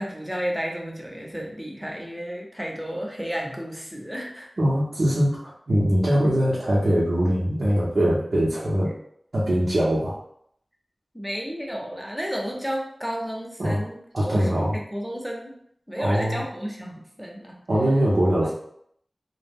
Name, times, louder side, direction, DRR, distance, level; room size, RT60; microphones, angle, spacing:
voice 1, 0.0-4.5 11.1-15.5 15.9-17.6, equal, 5° right, 0 dB, 0.6 m, -32 dB
voice 2, 4.6-5.4 5.7-8.9 9.3-10.2 13.6-13.8 14.1-14.7 16.0-16.5 17.7-18.5, equal, 75° right, -8 dB, 0.6 m, -22 dB
2.2 x 2.0 x 3.4 m, 0.69 s
cardioid pair, 40°, 0 cm